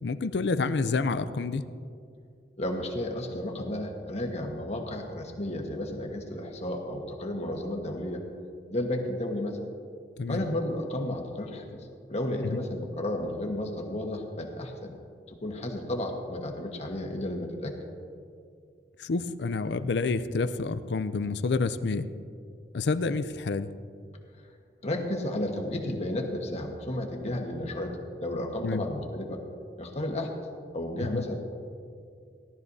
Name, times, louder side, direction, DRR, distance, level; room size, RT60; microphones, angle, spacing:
voice 1, 0.0-1.6 10.2-10.4 12.4-12.6 19.0-22.1 22.7-23.7 28.6-28.8 31.1-31.2, left 4 dB, 70° left, 13 dB, 0.5 m, -28 dB
voice 2, 2.6-8.2 8.7-9.6 10.3-11.7 12.1-14.9 15.3-17.7 24.8-29.4 29.8-30.3 30.7-31.3, left 1 dB, 40° left, 2 dB, 1.3 m, -32 dB
17.5 x 12.0 x 2.7 m, 2.3 s
head